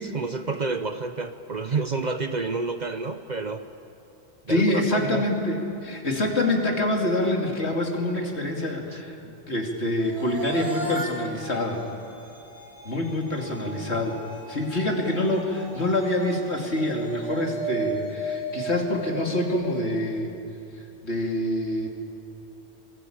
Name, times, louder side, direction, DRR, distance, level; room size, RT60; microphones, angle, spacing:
voice 1, 0.1-3.6 4.4-5.3, right 4 dB, 45° right, 9 dB, 0.8 m, -29 dB
voice 2, 4.5-11.8 12.8-14.2 14.5-20.3 21.0-21.9, left 1 dB, 65° left, 1 dB, 3.0 m, -26 dB
sound 1, 10.0-20.2, right 2 dB, 60° right, 3.7 m, -36 dB
26.5 x 20.0 x 8.8 m, 2.9 s
omnidirectional pair, 1.2 m